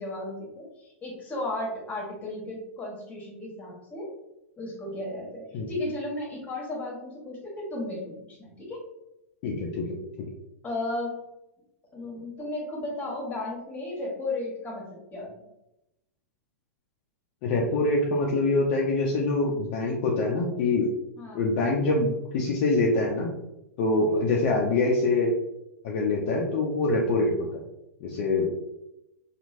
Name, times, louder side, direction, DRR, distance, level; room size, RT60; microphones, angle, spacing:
voice 1, 0.0-4.1 4.6-8.8 10.6-11.1 11.9-15.3 21.2-21.5 27.2-27.4, left 2 dB, 20° left, -2 dB, 1.2 m, -34 dB
voice 2, 9.4-9.8 17.4-20.9 21.3-23.3 23.8-25.3 25.8-27.6 28.0-28.5, left 2 dB, 45° left, -2 dB, 0.5 m, -24 dB
2.9 x 2.5 x 2.5 m, 0.89 s
figure-of-eight pair, 95°, 8 cm